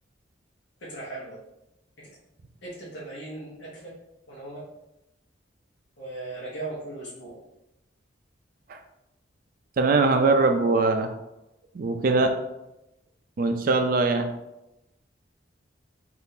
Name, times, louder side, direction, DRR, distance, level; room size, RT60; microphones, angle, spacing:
voice 1, 0.8-1.4 2.0-2.1 2.6-3.9 4.3-4.6 6.0-7.4, right 2 dB, 65° left, -7 dB, 0.8 m, -38 dB
voice 2, 9.8-11.1 11.7-12.3 13.4-14.3, right 3 dB, 45° right, 6 dB, 0.3 m, -21 dB
3.6 x 2.5 x 2.7 m, 0.92 s
head